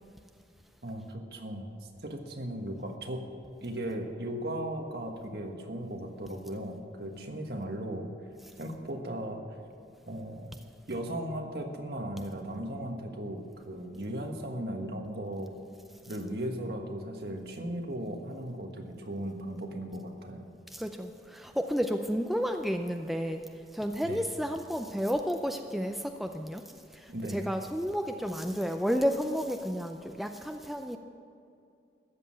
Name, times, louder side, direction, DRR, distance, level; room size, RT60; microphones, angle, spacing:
voice 1, 0.8-1.7 2.0-3.3 3.6-8.1 8.6-9.4 10.1-10.6 10.9-15.5 16.1-20.5 24.0-24.2 27.1-27.4, right 1 dB, 60° right, 3 dB, 1.4 m, -37 dB
voice 2, 20.7-23.4 23.7-26.6 26.9-31.0, equal, ahead, 5 dB, 0.4 m, -31 dB
13.5 x 7.5 x 8.6 m, 2.5 s
head